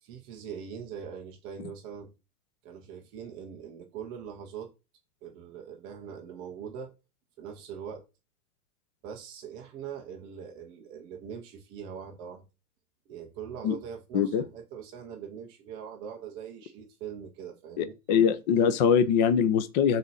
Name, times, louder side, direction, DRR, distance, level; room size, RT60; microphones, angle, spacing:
voice 1, 0.0-2.1 2.6-4.7 5.2-6.9 7.4-8.0 9.0-12.4 13.1-17.9, right 7 dB, 10° right, 0.4 m, -42 dB
voice 2, 14.1-14.4 17.8-20.0, left 7 dB, 30° left, 0.6 m, -23 dB
6.4 x 4.2 x 6.3 m
supercardioid pair, 155°, 44 cm